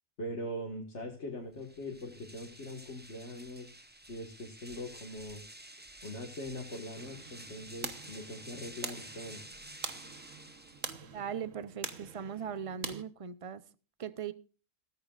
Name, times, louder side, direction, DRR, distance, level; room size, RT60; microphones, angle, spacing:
voice 1, 0.2-3.7 4.1-5.4 6.0-9.4, left 1 dB, 60° left, 2.1 m, -42 dB
sound 1, 1.5-11.2, right 1 dB, 10° right, 0.9 m, -51 dB
sound 2, 6.9-13.0, right 6 dB, 70° right, 1.6 m, -44 dB
voice 2, 11.1-13.6 14.0-14.3, right 7 dB, 35° right, 0.7 m, -39 dB
15.5 x 13.5 x 2.5 m
omnidirectional pair, 1.4 m